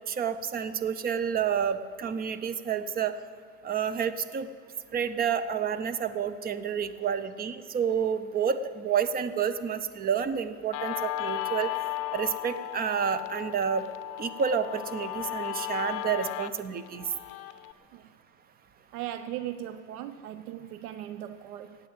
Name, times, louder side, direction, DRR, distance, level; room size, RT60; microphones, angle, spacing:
voice 1, 0.1-3.1 3.6-4.5 4.9-11.7 12.1-13.8 14.2-17.1, right 7 dB, 20° right, 12 dB, 0.6 m, -29 dB
Guitar, 10.7-17.7, left 15 dB, 45° left, 0.8 m, -35 dB
voice 2, 18.9-21.8, right 12 dB, 65° right, 11 dB, 0.8 m, -38 dB
16.0 x 8.9 x 7.7 m, 2.1 s
hypercardioid pair, 115°, 48 cm